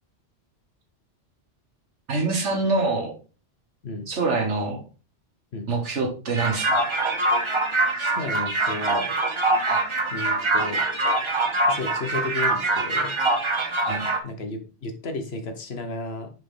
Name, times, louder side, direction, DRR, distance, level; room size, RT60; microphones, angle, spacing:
voice 1, 2.1-3.1 4.1-4.8 5.7-6.8 9.7-9.8 13.8-14.1, right 3 dB, 75° right, 1 dB, 1.8 m, -25 dB
sound 1, 6.3-14.2, right 2 dB, 30° right, 0.7 m, -24 dB
voice 2, 8.0-9.1 10.1-10.8 11.7-13.1 14.2-16.3, left 3 dB, 60° left, 6 dB, 1.3 m, -33 dB
6.3 x 4.3 x 3.7 m, 0.35 s
omnidirectional pair, 1.2 m